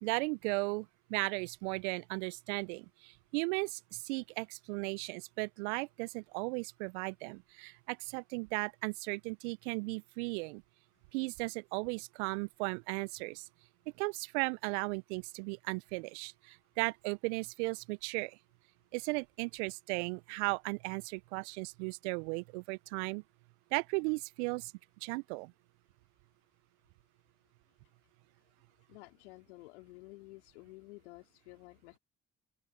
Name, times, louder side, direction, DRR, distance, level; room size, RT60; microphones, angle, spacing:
voice 1, 0.0-10.6 11.1-13.4 14.0-18.4 18.9-23.2 23.7-24.7 25.0-25.5, right 29 dB, 75° right, 1.5 m, -36 dB
voice 2, 28.9-32.0, left 23 dB, 75° left, 5.2 m, -52 dB
open air
figure-of-eight pair, 45°, 34 cm